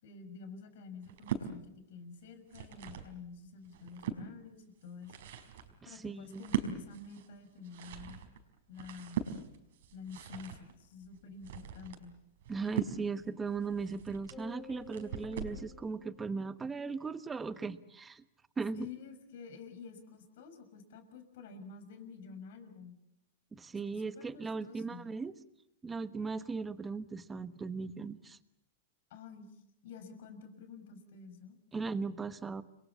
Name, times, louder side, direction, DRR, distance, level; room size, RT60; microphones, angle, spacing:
voice 1, 0.0-5.2 5.8-8.2 8.7-9.3 9.9-12.2 18.8-23.0 23.9-25.1 29.1-31.6, left 5 dB, 65° left, 8 dB, 6.2 m, -49 dB
sound 1, 1.0-1.5 2.3-3.1 3.6-4.2 4.8-15.7, right 8 dB, 70° right, 4.9 m, -41 dB
voice 2, 5.8-6.4 12.5-18.2 18.6-18.9 23.5-25.3 25.8-28.4 31.7-32.6, right 4 dB, 10° right, 12 dB, 1.2 m, -38 dB
sound 2, 14.3-16.8, left 4 dB, 15° left, 4.1 m, -53 dB
29.5 x 22.5 x 7.2 m, 0.80 s
supercardioid pair, 145°, 0 cm